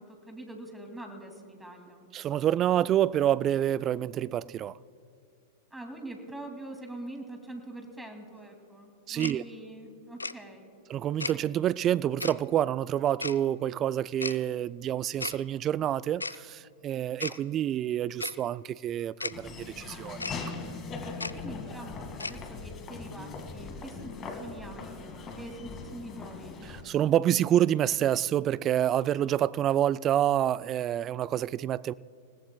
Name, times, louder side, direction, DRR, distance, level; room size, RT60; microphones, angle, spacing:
voice 1, 0.0-2.1 5.7-10.7 21.3-25.1 25.4-26.6, right 1 dB, 5° right, 2.5 m, -44 dB
voice 2, 2.1-4.8 9.1-9.4 10.9-20.4 26.7-31.9, right 11 dB, 30° right, 0.3 m, -27 dB
Tick-tock, 9.2-9.3 10.2-10.3 11.2-11.3 12.2-12.3 13.2-13.4 14.2-14.4 15.2-15.4 16.2-16.4 17.2-17.4 18.2-18.3 19.2-19.3 20.2-20.4 21.2-21.3 22.2-22.4, left 3 dB, 90° left, 0.4 m, -34 dB
Laughter / Walk footsteps, 19.3-26.8, left 4 dB, 30° left, 2.0 m, -40 dB
27.5 x 17.5 x 2.3 m
figure-of-eight pair, 100°, 0 cm